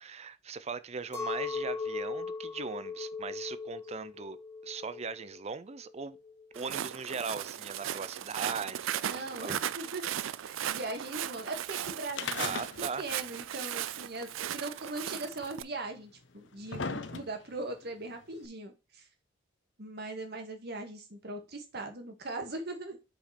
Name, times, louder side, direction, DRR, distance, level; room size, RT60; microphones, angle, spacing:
voice 1, 0.0-4.4 4.6-6.2 6.5-9.5 12.3-13.0, right 5 dB, 35° right, 0.5 m, -39 dB
Chink clink, 1.1-6.6, left 4 dB, 15° left, 2.3 m, -38 dB
Walk footsteps, 6.5-15.6, right 10 dB, 90° right, 0.4 m, -37 dB
voice 2, 9.1-10.1 10.4-12.6 13.0-19.0 19.8-23.0, right 2 dB, 55° right, 1.8 m, -40 dB
sound 1, 12.1-13.1 13.4-13.5 14.5-14.6 15.5-15.6 16.2-17.6 18.4-18.5, left 5 dB, 65° left, 0.7 m, -37 dB
5.4 x 5.2 x 4.2 m
head